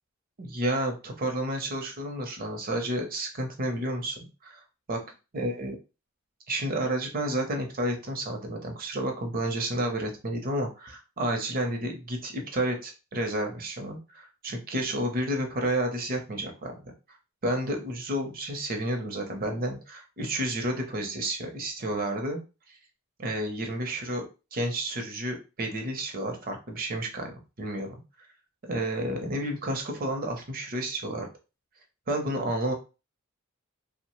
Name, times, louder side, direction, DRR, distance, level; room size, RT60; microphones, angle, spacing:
voice 1, 0.4-4.6 4.9-5.0 5.3-5.8 6.5-16.9 17.4-22.4 23.2-24.3 24.5-27.9 28.7-31.3 32.1-32.7, right 1 dB, 45° right, 4 dB, 0.7 m, -31 dB
2.9 x 2.1 x 3.0 m, 0.30 s
head